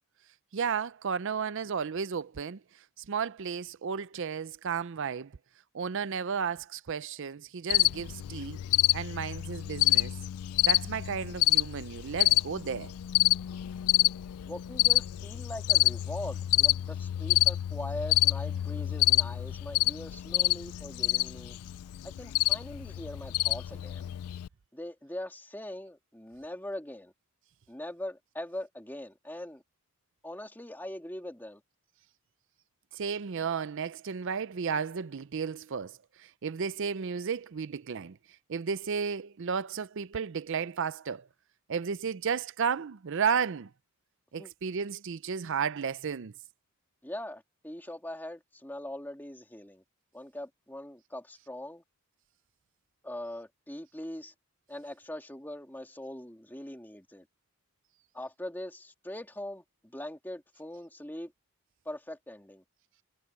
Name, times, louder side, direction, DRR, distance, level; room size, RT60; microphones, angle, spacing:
voice 1, 0.5-2.6 3.0-5.3 5.7-8.6 8.9-10.1 10.7-12.9 32.9-38.2 38.5-41.3 41.7-43.7 44.3-46.3, right 6 dB, 55° right, 0.5 m, -33 dB
Cricket, 7.7-24.5, left 18 dB, 80° left, 0.3 m, -28 dB
voice 2, 14.4-21.6 22.0-24.1 24.7-27.1 27.7-29.6 30.2-31.6 44.4-44.5 47.0-49.8 50.1-51.8 53.0-54.3 54.7-57.3 58.1-59.6 59.9-61.3 61.9-62.6, left 1 dB, 10° left, 2.3 m, -41 dB
head